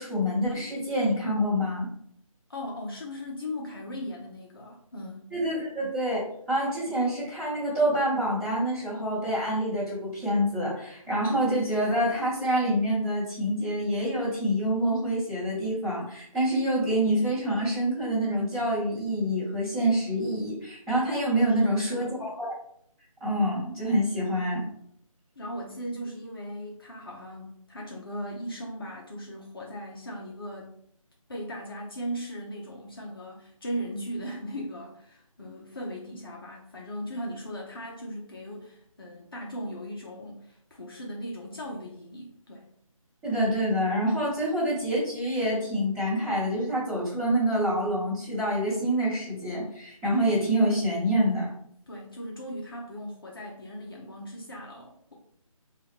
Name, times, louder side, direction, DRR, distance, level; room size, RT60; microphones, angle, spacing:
voice 1, 0.0-1.9 5.3-22.1 22.4-22.5 23.2-24.6 43.2-51.5, equal, 10° right, -10 dB, 1.2 m, -26 dB
voice 2, 2.5-5.3 21.6-22.1 25.4-30.7 31.3-42.7 51.9-55.1, equal, 40° left, -2 dB, 0.6 m, -38 dB
3.7 x 2.4 x 3.3 m, 0.69 s
figure-of-eight pair, 155°, 18 cm